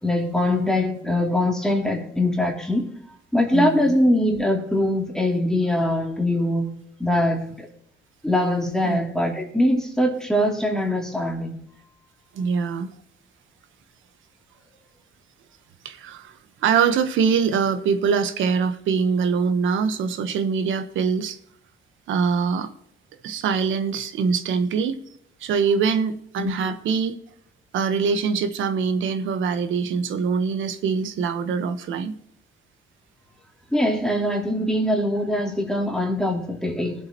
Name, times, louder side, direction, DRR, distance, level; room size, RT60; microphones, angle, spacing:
voice 1, 0.0-2.9 3.3-6.7 7.0-7.7 8.2-11.6 26.4-26.7 33.7-36.9, left 1 dB, 5° left, 0 dB, 2.9 m, -22 dB
voice 2, 3.5-3.9 8.8-9.0 12.3-12.9 15.8-16.3 16.6-21.4 22.1-22.7 23.2-25.0 25.4-27.1 27.7-32.1, right 6 dB, 80° right, 9 dB, 1.2 m, -23 dB
20.5 x 7.6 x 3.0 m, 0.72 s
cardioid pair, 90°, 20 cm